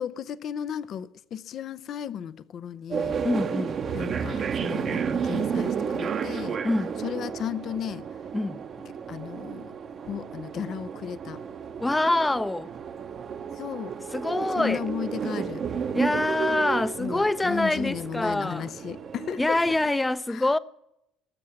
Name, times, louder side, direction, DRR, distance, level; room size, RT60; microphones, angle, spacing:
voice 1, 0.0-3.2 3.9-6.6 7.0-8.1 9.1-9.7 10.0-11.4 13.6-13.9 14.6-15.6 17.0-19.6 20.3-20.4, left 9 dB, 55° left, 0.6 m, -34 dB
sound 1, 2.9-19.9, right 7 dB, 45° right, 1.0 m, -32 dB
voice 2, 3.2-3.8 6.6-7.0 8.3-8.6 11.8-12.7 14.1-14.8 15.9-18.7 19.4-20.6, left 2 dB, 15° left, 0.7 m, -25 dB
19.0 x 7.6 x 8.6 m
hypercardioid pair, 70°, 0 cm